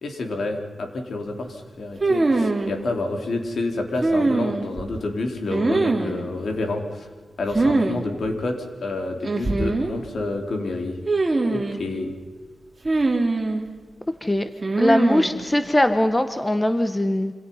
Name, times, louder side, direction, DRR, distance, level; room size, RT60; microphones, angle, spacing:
voice 1, 0.0-7.1 7.4-11.0 11.4-12.1, left 2 dB, 65° left, 4 dB, 4.0 m, -28 dB
sound 1, 2.0-2.7 4.0-4.8 5.5-6.2 7.5-8.0 8.2-8.3 9.2-9.9 11.1-11.8 12.9-13.6 14.6-15.4, right 2 dB, 25° right, 2.8 m, -22 dB
voice 2, 14.8-17.3, left 1 dB, 15° left, 9 dB, 1.1 m, -21 dB
27.5 x 27.0 x 5.7 m, 1.5 s
wide cardioid pair, 125°, 0 cm